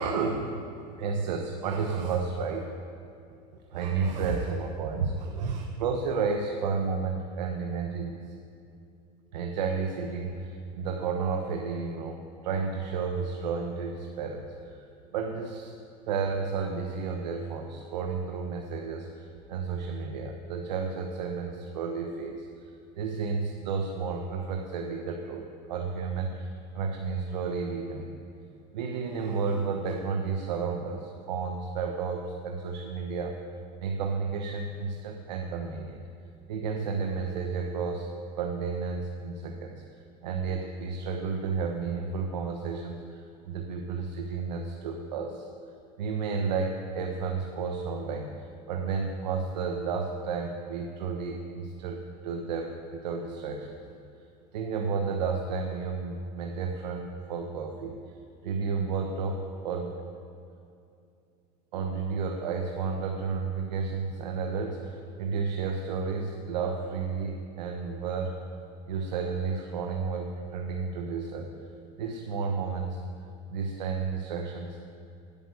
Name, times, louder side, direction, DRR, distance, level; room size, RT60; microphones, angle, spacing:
voice 1, 0.0-2.7 3.7-8.3 9.3-15.8 16.1-28.1 28.7-33.4 33.8-36.0 36.5-38.1 38.3-45.5 46.0-53.8 54.5-60.0 61.7-68.3 68.9-71.5 72.0-73.0 73.5-74.9, right 5 dB, 90° right, 2 dB, 1.1 m, -32 dB
10.5 x 8.8 x 8.2 m, 2.5 s
supercardioid pair, 120°, 21 cm